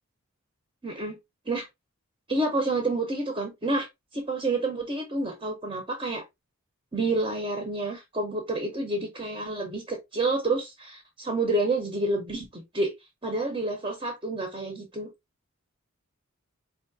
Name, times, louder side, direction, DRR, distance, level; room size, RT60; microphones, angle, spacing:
voice 1, 0.8-1.2 1.5-1.7 2.3-3.9 4.1-6.2 6.9-12.9 13.2-15.1, right 2 dB, 25° right, 0.9 m, -29 dB
4.8 x 2.9 x 2.7 m
head